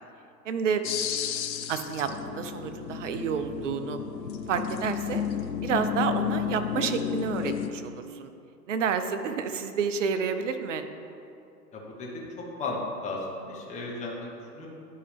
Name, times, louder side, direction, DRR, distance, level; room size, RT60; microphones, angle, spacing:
voice 1, 0.4-0.8 1.7-4.0 4.5-5.2 5.6-8.3 8.7-10.8, right 6 dB, 50° right, 8 dB, 0.7 m, -29 dB
sound 1, 0.8-7.7, left 9 dB, 85° left, 0.6 m, -32 dB
voice 2, 11.7-12.3 12.5-14.7, left 2 dB, 15° left, -3 dB, 1.2 m, -35 dB
11.5 x 4.8 x 3.4 m, 2.6 s
figure-of-eight pair, 115°, 49 cm